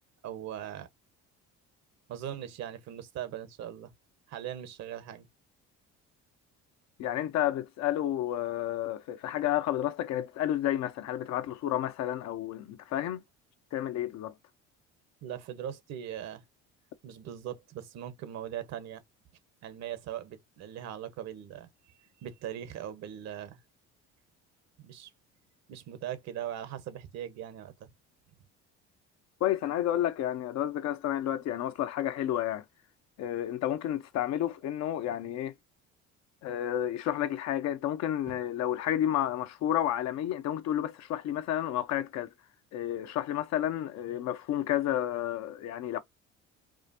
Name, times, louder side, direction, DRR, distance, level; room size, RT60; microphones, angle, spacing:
voice 1, 0.2-0.9 2.1-3.9 4.3-5.3 15.2-16.4 17.0-19.0 19.6-21.7 22.2-23.6 24.8-25.1 25.7-27.9 38.3-38.4, right 10 dB, 65° right, 1.1 m, -40 dB
voice 2, 7.0-13.2 13.7-14.3 29.4-32.6 33.2-35.5 36.4-42.3 42.7-46.0, left 12 dB, 65° left, 0.8 m, -31 dB
4.8 x 2.5 x 2.7 m
cardioid pair, 115°, 29 cm